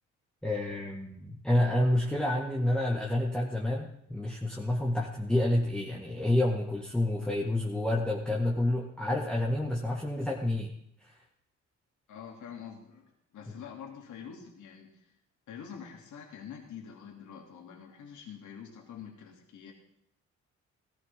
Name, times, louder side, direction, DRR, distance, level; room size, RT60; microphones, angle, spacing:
voice 1, 0.4-10.7 11.0-11.1, left 1 dB, 5° left, -2 dB, 1.8 m, -29 dB
voice 2, 12.1-15.1 15.5-19.7, left 7 dB, 75° left, 1 dB, 3.0 m, -46 dB
17.0 x 15.5 x 3.7 m, 0.73 s
cardioid pair, 90°, 30 cm